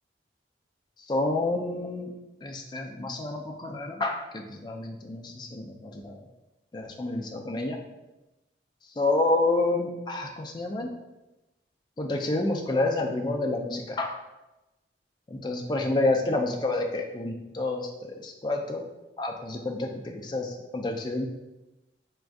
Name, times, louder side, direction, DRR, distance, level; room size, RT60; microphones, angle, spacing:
voice 1, 1.0-2.1 2.4-6.2 6.7-7.8 9.0-10.9 12.0-14.2 15.3-18.8 19.2-21.3, left 2 dB, 25° left, 2 dB, 0.3 m, -29 dB
4.5 x 2.5 x 2.3 m, 1.0 s
head